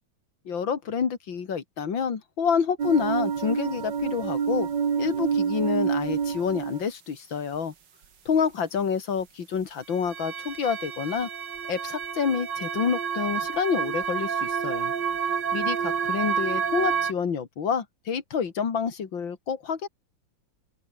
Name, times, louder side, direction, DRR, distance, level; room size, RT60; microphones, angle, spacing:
voice 1, 0.5-4.7 5.0-7.7 8.3-11.3 11.7-14.9 15.5-19.9, left 6 dB, 75° left, 2.9 m, -28 dB
sound 1, 2.8-6.8 10.1-17.1, right 7 dB, 65° right, 2.5 m, -28 dB
open air
omnidirectional pair, 2.1 m